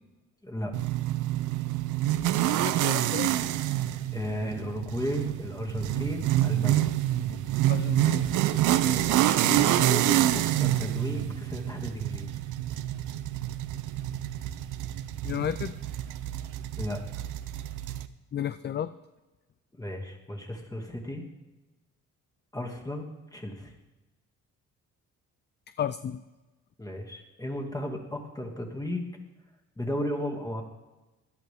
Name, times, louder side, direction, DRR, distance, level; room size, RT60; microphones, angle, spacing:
sound 1, 0.7-18.1, right 13 dB, 90° right, 0.7 m, -27 dB
voice 1, 2.6-3.3 7.7-8.3 15.2-15.7 18.3-18.9 25.8-26.2, left 9 dB, 35° left, 13 dB, 0.5 m, -32 dB
voice 2, 4.1-6.9 8.8-12.3 16.8-17.0 19.8-21.2 22.5-23.7 26.8-29.1 29.8-30.6, equal, 10° left, 3 dB, 2.3 m, -34 dB
17.0 x 11.0 x 3.6 m, 1.1 s
cardioid pair, 90°, 30 cm